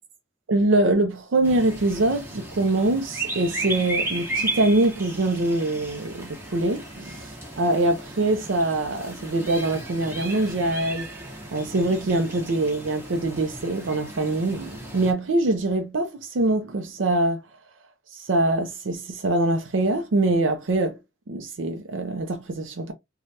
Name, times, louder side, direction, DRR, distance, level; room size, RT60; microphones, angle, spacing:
voice 1, 0.5-11.1 11.5-17.4 18.1-21.0 21.3-22.9, right 2 dB, 85° right, 0.5 m, -24 dB
sound 1, 1.4-15.1, right 2 dB, 15° right, 0.8 m, -35 dB
3.2 x 2.3 x 2.6 m
head